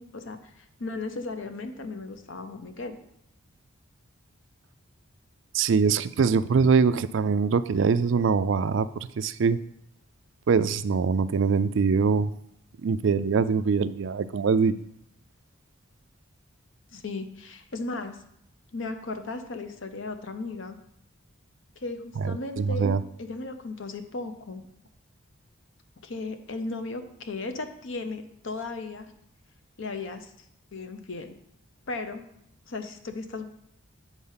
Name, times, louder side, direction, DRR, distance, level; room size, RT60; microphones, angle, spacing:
voice 1, 0.0-3.0 16.9-18.2 18.7-20.8 21.8-24.7 26.0-29.1 29.8-30.3 30.7-31.3 31.9-32.3 32.7-33.5, left 3 dB, 60° left, 8 dB, 0.7 m, -36 dB
voice 2, 5.5-9.6 10.5-12.3 12.8-14.8 22.2-23.0, right 5 dB, 60° right, 13 dB, 0.3 m, -23 dB
8.1 x 4.3 x 5.6 m, 0.74 s
head